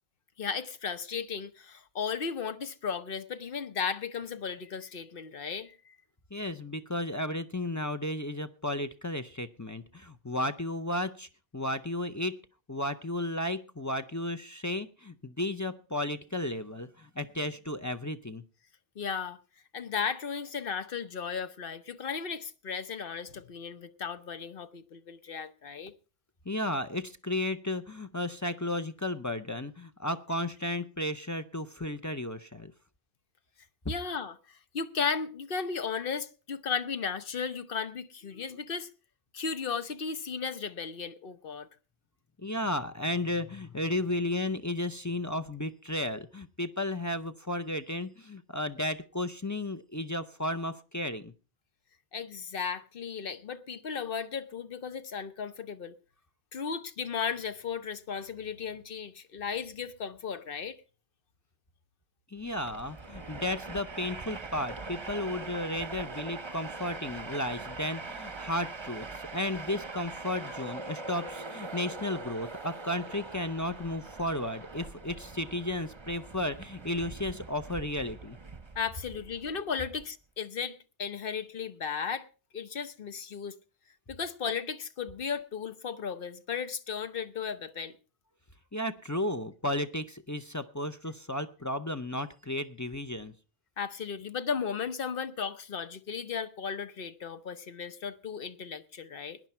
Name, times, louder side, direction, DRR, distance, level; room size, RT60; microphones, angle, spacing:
voice 1, 0.4-6.0 19.0-19.4 19.7-25.9 33.9-38.9 39.3-41.7 52.1-55.9 56.5-60.8 78.7-82.3 82.5-83.5 84.1-87.9 93.8-99.4, left 6 dB, 60° left, 1.1 m, -35 dB
voice 2, 6.3-11.3 11.5-12.4 12.7-18.4 26.5-32.7 33.8-33.9 42.4-51.3 62.3-78.4 88.7-93.3, left 1 dB, 20° left, 0.5 m, -34 dB
Train, 62.4-80.0, right 3 dB, 30° right, 0.8 m, -42 dB
18.0 x 10.5 x 4.4 m
omnidirectional pair, 1.1 m